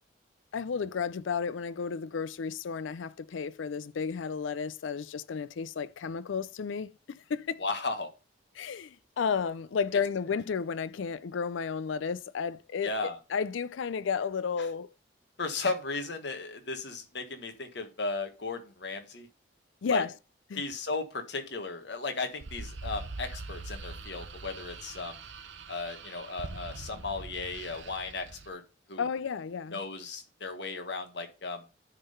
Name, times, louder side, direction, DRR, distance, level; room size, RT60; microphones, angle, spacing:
voice 1, 0.5-6.9 7.3-7.6 8.5-14.9 19.8-20.1 20.5-20.6 29.0-29.8, left 6 dB, 80° left, 0.4 m, -32 dB
voice 2, 7.6-8.1 12.8-13.2 15.4-19.3 19.9-20.0 20.6-25.1 25.7-28.6 28.9-29.1 29.7-31.6, left 3 dB, 65° left, 1.4 m, -35 dB
sound 1, 22.4-28.5, right 3 dB, 75° right, 0.8 m, -43 dB
10.0 x 3.8 x 5.4 m
head